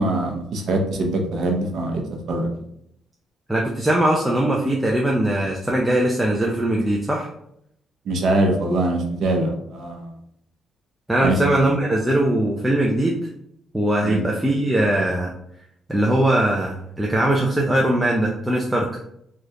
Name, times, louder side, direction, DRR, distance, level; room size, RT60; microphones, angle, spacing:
voice 1, 0.0-2.0 2.3-2.6 8.1-10.1 11.2-11.5 14.0-14.2, right 2 dB, 65° right, 2 dB, 0.7 m, -23 dB
voice 2, 3.5-7.3 11.1-13.3 13.7-15.3 15.9-18.9, right 1 dB, 10° right, -2 dB, 0.5 m, -20 dB
3.2 x 2.4 x 2.7 m, 0.75 s
cardioid pair, 90°, 0 cm